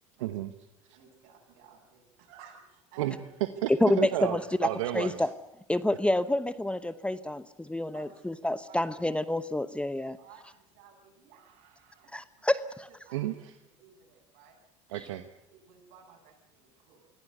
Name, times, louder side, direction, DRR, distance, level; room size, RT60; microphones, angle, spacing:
voice 1, 0.2-0.5 0.9-1.0 3.0-3.7 4.0-5.3 13.1-13.5 14.9-15.2, right 13 dB, 80° right, 10 dB, 1.1 m, -32 dB
voice 2, 0.9-3.2 4.2-4.3 5.9-6.0 7.9-8.2 8.7-8.9 10.2-12.1 12.9-13.3 13.8-14.6 15.1-15.2 15.5-17.1, right 6 dB, 65° right, 1 dB, 8.0 m, -55 dB
voice 3, 3.8-4.4 4.9-5.3 5.7-10.2 12.1-12.9, left 1 dB, 5° left, 14 dB, 0.9 m, -28 dB
24.5 x 16.5 x 8.0 m, 0.90 s
hypercardioid pair, 80°, 16 cm